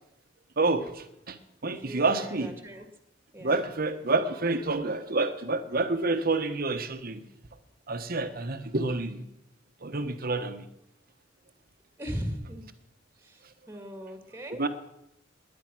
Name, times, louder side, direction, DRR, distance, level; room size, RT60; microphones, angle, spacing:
voice 1, 0.6-1.4 1.6-2.5 3.4-7.2 7.9-9.2 9.8-10.6 14.6-14.7, right 3 dB, 50° right, 9 dB, 1.3 m, -28 dB
voice 2, 1.8-2.9 3.3-3.6 12.0-12.7 13.2-14.6, equal, 10° right, 6 dB, 1.9 m, -38 dB
19.5 x 10.0 x 6.2 m, 0.82 s
head